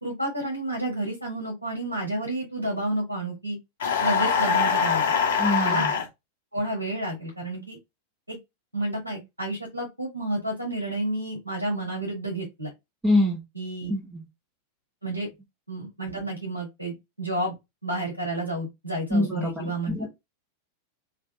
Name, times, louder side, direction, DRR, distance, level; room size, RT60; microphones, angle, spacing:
voice 1, 0.0-3.6 4.0-5.1 5.6-5.9 6.5-7.8 8.3-8.4 8.7-12.7 13.6-13.9 15.0-15.3 15.7-17.6 17.8-20.0, right 1 dB, 85° right, 1.9 m, -30 dB
sound 1, 3.8-6.1, left 6 dB, 65° left, 1.2 m, -23 dB
voice 2, 5.4-5.9 13.0-13.4 13.9-14.2 19.1-19.5 19.9-20.1, left 1 dB, 10° right, 1.4 m, -24 dB
3.4 x 3.4 x 2.6 m
figure-of-eight pair, 90°, 0 cm